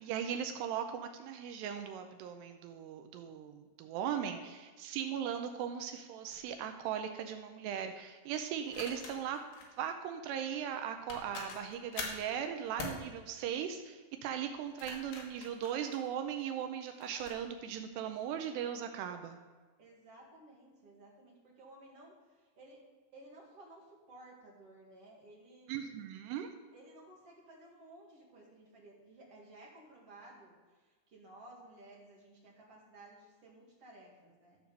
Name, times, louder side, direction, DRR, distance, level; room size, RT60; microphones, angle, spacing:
voice 1, 0.0-9.4 9.8-19.4 25.7-26.5, right 9 dB, 80° right, 6 dB, 2.6 m, -38 dB
voice 2, 3.8-4.5 19.8-22.8 23.1-25.8 26.7-30.6 31.1-34.6, right 1 dB, 40° right, -3 dB, 2.5 m, -56 dB
sound 1, 6.3-6.5 8.7-9.7 10.7-10.8 11.1-12.3 12.8-13.0 14.6-16.4 17.0-17.4, left 4 dB, 65° left, 3.3 m, -44 dB
13.5 x 4.9 x 6.8 m, 1.4 s
omnidirectional pair, 5.2 m